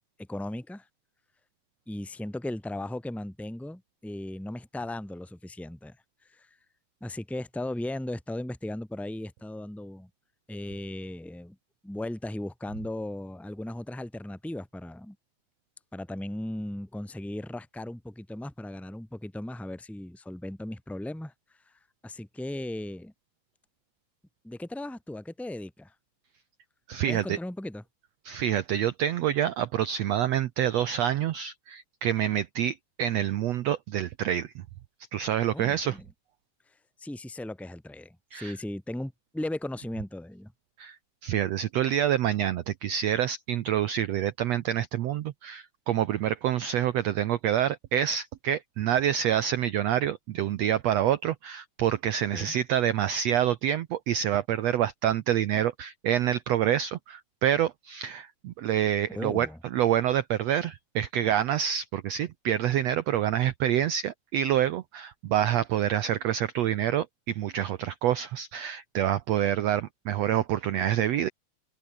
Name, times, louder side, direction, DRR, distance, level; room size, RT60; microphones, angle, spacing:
voice 1, 0.2-0.9 1.9-6.0 6.3-6.5 7.0-10.1 10.5-11.6 11.8-15.1 15.9-21.3 22.0-23.1 24.4-25.9 27.1-27.8 35.5-36.0 37.0-40.5 52.3-52.5 59.1-59.6, left 1 dB, ahead, 0.3 m, -37 dB
voice 2, 26.9-27.4 28.2-34.5 35.1-36.0 38.3-38.5 40.8-41.0 41.2-59.5 59.7-71.3, right 10 dB, 80° right, 1.5 m, -27 dB
open air
omnidirectional pair, 4.0 m